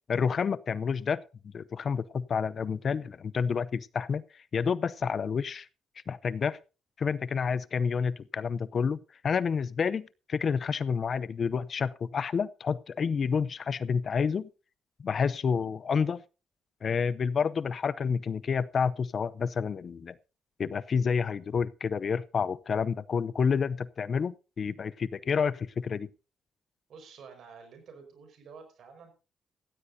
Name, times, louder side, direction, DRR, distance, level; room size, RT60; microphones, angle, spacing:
voice 1, 0.1-5.7 6.1-6.6 7.0-14.5 15.0-16.2 16.8-20.2 20.6-26.1, left 6 dB, 50° left, 0.6 m, -29 dB
voice 2, 26.9-29.1, right 5 dB, 65° right, 5.2 m, -50 dB
16.0 x 15.0 x 2.7 m
cardioid pair, 90°, 0 cm